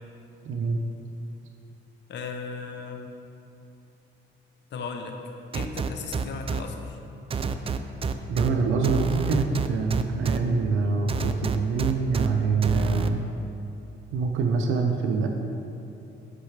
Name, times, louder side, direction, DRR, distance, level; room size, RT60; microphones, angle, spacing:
voice 1, 0.4-0.8 8.3-13.3 14.1-15.3, right 4 dB, 85° right, 3 dB, 0.6 m, -25 dB
voice 2, 2.1-3.1 4.7-5.2 5.5-7.0, left 4 dB, 65° left, 4 dB, 0.8 m, -36 dB
sound 1, 5.5-6.6 7.3-8.5 8.8-10.4 11.1-12.3 12.6-13.1, right 5 dB, 30° right, 0.4 m, -27 dB
9.6 x 5.6 x 3.3 m, 2.8 s
cardioid pair, 90°, 20 cm